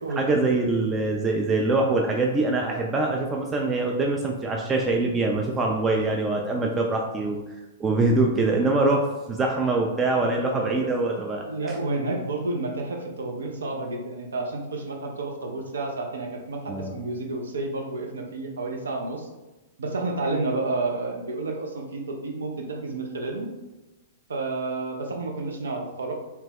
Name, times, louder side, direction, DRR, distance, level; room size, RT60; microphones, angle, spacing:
voice 1, 0.2-7.4 7.8-11.8 16.7-16.9, right 2 dB, 20° right, 0 dB, 0.3 m, -24 dB
voice 2, 10.2-10.9 11.4-19.3 19.8-23.5 24.3-26.1, right 2 dB, 75° right, 1 dB, 0.5 m, -30 dB
2.9 x 2.2 x 3.4 m, 1.1 s
figure-of-eight pair, 110°, 0 cm